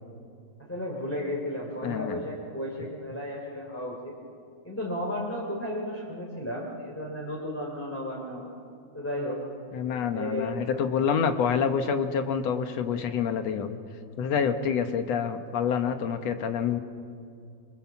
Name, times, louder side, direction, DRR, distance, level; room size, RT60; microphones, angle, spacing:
voice 1, 0.7-4.1 4.6-8.5 8.9-9.4 10.1-11.1, equal, 5° left, -3 dB, 2.6 m, -34 dB
voice 2, 1.8-2.2 9.7-13.8 14.2-16.8, left 7 dB, 65° left, 8 dB, 2.1 m, -27 dB
25.5 x 23.5 x 7.2 m, 2.4 s
omnidirectional pair, 3.4 m